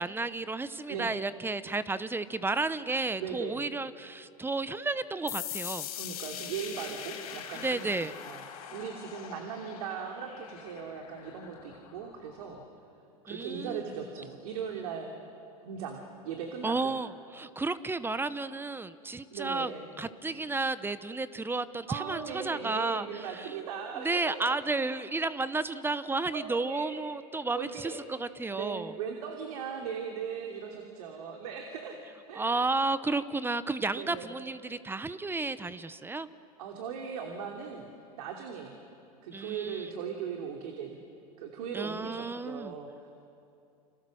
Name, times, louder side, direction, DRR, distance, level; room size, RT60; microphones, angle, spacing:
voice 1, 0.0-5.9 7.5-8.2 13.3-13.8 16.6-19.7 20.0-23.6 24.0-28.9 32.4-36.3 39.3-39.9 41.7-42.7, right 3 dB, 10° right, 14 dB, 0.9 m, -32 dB
voice 2, 3.2-3.6 5.9-7.9 8.3-8.4 8.7-12.6 13.2-15.1 15.6-16.9 19.3-19.9 21.9-24.6 26.3-26.9 27.5-28.0 28.5-32.0 32.3-32.6 33.9-34.4 36.6-38.7 39.2-41.0 41.4-42.9, right 7 dB, 70° right, 2 dB, 3.0 m, -38 dB
sound 1, 5.3-12.7, left 10 dB, 80° left, 5.0 m, -42 dB
29.5 x 27.0 x 6.4 m, 2.6 s
hypercardioid pair, 100°, 19 cm